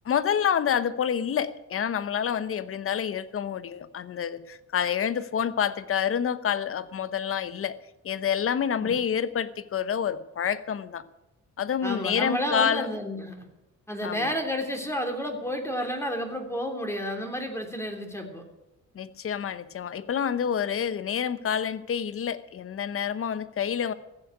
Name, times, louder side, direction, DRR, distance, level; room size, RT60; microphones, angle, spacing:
voice 1, 0.0-7.8 8.0-11.0 11.6-12.9 14.0-14.3 18.9-23.9, left 8 dB, 45° left, 14 dB, 0.9 m, -28 dB
voice 2, 11.8-13.4 13.9-18.4, equal, 10° left, 3 dB, 3.1 m, -31 dB
15.5 x 7.4 x 9.9 m, 0.95 s
cardioid pair, 90°, 30 cm